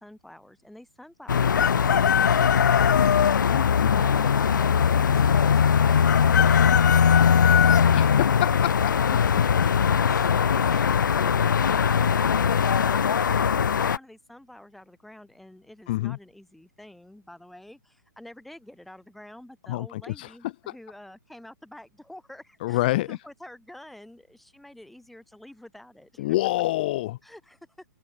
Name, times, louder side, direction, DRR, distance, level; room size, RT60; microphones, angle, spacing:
voice 1, 0.0-3.1 13.7-26.4 27.2-27.8, left 1 dB, ahead, 5.0 m, -48 dB
sound 1, 1.3-14.0, left 7 dB, 90° left, 1.2 m, -21 dB
Chicken rooster, 1.5-3.4 6.1-7.8, left 8 dB, 70° left, 1.4 m, -23 dB
voice 2, 3.5-4.0 7.9-8.5 8.8-8.9 15.9-16.2 19.7-20.3 22.6-23.2 26.2-27.2, left 17 dB, 30° left, 0.4 m, -27 dB
open air
hypercardioid pair, 165°, 10 cm